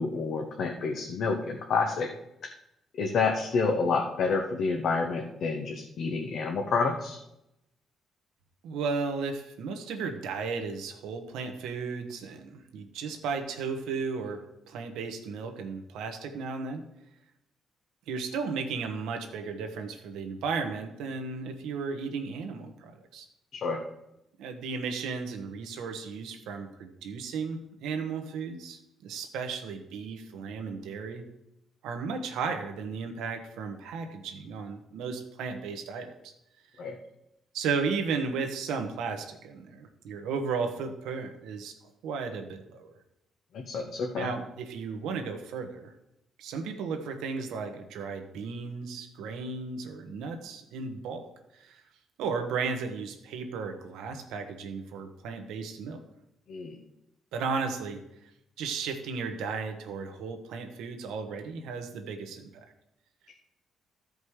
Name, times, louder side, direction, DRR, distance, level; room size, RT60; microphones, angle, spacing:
voice 1, 0.0-2.1 3.0-7.2 23.5-23.8 36.8-37.0 43.5-44.3 56.5-56.8, left 4 dB, 65° left, 2 dB, 1.1 m, -29 dB
voice 2, 8.6-16.8 18.1-23.3 24.4-31.2 31.8-36.3 36.7-36.8 37.5-41.8 42.0-42.9 44.1-45.9 46.4-51.8 52.2-56.0 57.3-58.0 58.6-62.5, right 5 dB, 90° right, 6 dB, 1.2 m, -34 dB
13.5 x 5.3 x 4.8 m, 0.84 s
cardioid pair, 90°, 0 cm